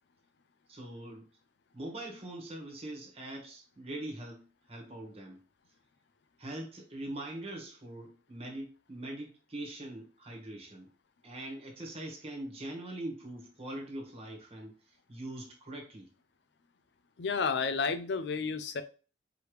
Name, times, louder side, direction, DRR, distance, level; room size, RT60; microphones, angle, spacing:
voice 1, 0.7-1.3 1.7-5.4 6.4-10.9 11.2-14.8 15.1-16.1, right 1 dB, 35° right, 0 dB, 1.5 m, -42 dB
voice 2, 17.2-18.8, left 5 dB, 65° left, 11 dB, 0.5 m, -31 dB
4.8 x 3.2 x 3.2 m, 0.35 s
head